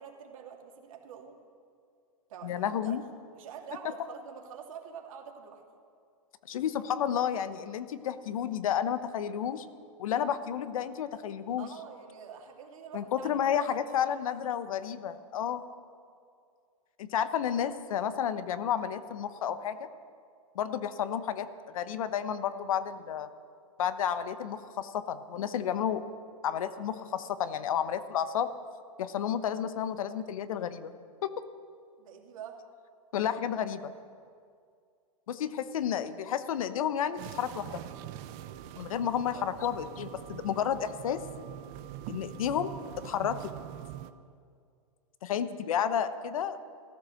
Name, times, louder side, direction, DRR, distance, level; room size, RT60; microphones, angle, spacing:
voice 1, 0.0-1.4 2.3-2.9 3.3-5.6 11.6-14.2 32.0-32.6 35.5-35.7 39.0-39.5, right 7 dB, 65° right, 1 dB, 2.6 m, -46 dB
voice 2, 2.4-3.0 6.5-9.6 10.0-11.7 12.9-15.6 17.0-19.9 20.5-21.5 21.7-23.3 23.8-26.1 26.4-28.5 29.0-30.9 31.2-31.3 33.1-33.9 35.3-37.9 38.7-41.2 42.1-42.7 43.0-43.5 45.2-46.6, left 9 dB, 70° left, 12 dB, 1.0 m, -31 dB
sound 1, 37.2-44.1, right 12 dB, 45° right, 0.8 m, -43 dB
15.0 x 14.0 x 6.4 m, 2.2 s
hypercardioid pair, 120°, 18 cm